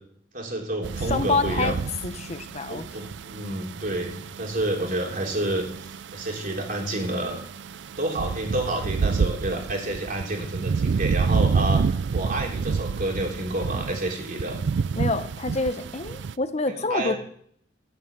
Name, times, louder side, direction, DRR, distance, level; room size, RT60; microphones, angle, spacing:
voice 1, 0.3-1.8 2.7-7.4 8.0-14.6 16.7-17.2, right 1 dB, 45° right, 1 dB, 3.1 m, -29 dB
sound 1, 0.8-16.3, right 5 dB, 65° right, 0.4 m, -29 dB
voice 2, 1.1-1.7 2.0-3.0 15.0-17.1, left 3 dB, 35° left, 10 dB, 1.0 m, -27 dB
14.5 x 5.7 x 8.1 m, 0.64 s
head